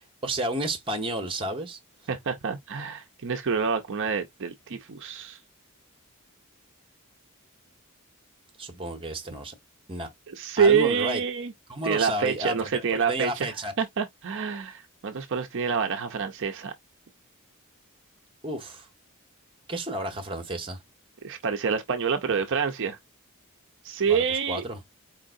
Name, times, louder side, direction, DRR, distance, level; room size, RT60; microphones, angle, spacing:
voice 1, 0.0-1.8 8.6-9.5 9.9-10.1 10.6-11.2 11.7-13.7 18.4-18.9 19.7-20.8 24.1-24.8, right 1 dB, 25° right, 1.1 m, -32 dB
voice 2, 2.1-5.4 10.3-11.5 11.8-16.7 21.2-23.0 23.8-24.6, right 6 dB, 60° right, 0.6 m, -27 dB
4.5 x 3.7 x 2.5 m
head